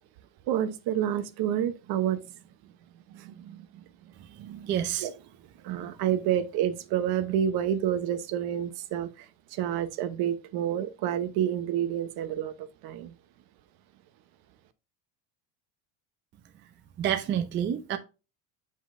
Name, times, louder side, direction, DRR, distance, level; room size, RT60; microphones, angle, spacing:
voice 1, 0.5-2.2 3.1-3.8 4.4-4.7 5.0-5.1 5.6-9.1 9.5-12.5 12.8-13.1, right 10 dB, 55° right, 0.9 m, -29 dB
voice 2, 4.7-5.1 17.0-18.0, right 10 dB, 25° right, 0.5 m, -28 dB
7.5 x 5.5 x 2.5 m
cardioid pair, 155°, 45 cm